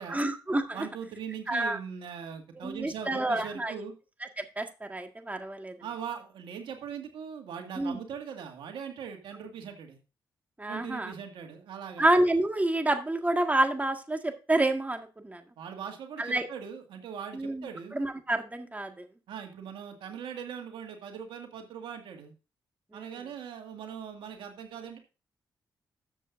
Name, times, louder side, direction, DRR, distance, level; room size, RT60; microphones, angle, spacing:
voice 1, 0.1-0.9 1.5-1.8 2.6-3.8 4.4-5.7 7.8-8.0 10.6-11.1 12.0-15.4 16.2-16.5 17.3-19.0 22.9-23.2, right 1 dB, 20° right, 5 dB, 1.8 m, -28 dB
voice 2, 0.7-3.9 5.8-10.0 10.7-12.1 15.6-18.0 19.3-22.3 22.9-25.0, right 7 dB, 80° right, 4 dB, 2.0 m, -40 dB
13.0 x 7.5 x 2.6 m, 0.31 s
supercardioid pair, 50°, 8 cm